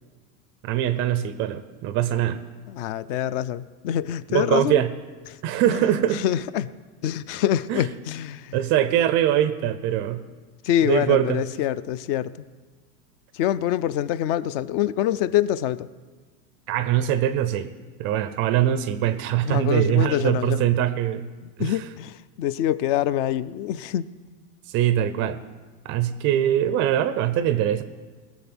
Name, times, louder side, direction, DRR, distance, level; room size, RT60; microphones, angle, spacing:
voice 1, 0.6-2.4 4.3-4.9 5.4-6.2 7.7-7.8 8.5-10.2 10.8-11.4 16.7-17.7 18.0-21.3 21.6-21.8 24.7-25.4 25.9-27.8, right 11 dB, 30° right, 13 dB, 0.4 m, -22 dB
voice 2, 2.7-4.8 5.7-5.8 6.1-6.7 7.0-8.6 10.6-12.4 13.3-15.9 19.4-20.7 21.4-24.1, left 11 dB, 40° left, 18 dB, 0.4 m, -25 dB
20.0 x 7.2 x 6.0 m, 1.4 s
supercardioid pair, 140°, 45 cm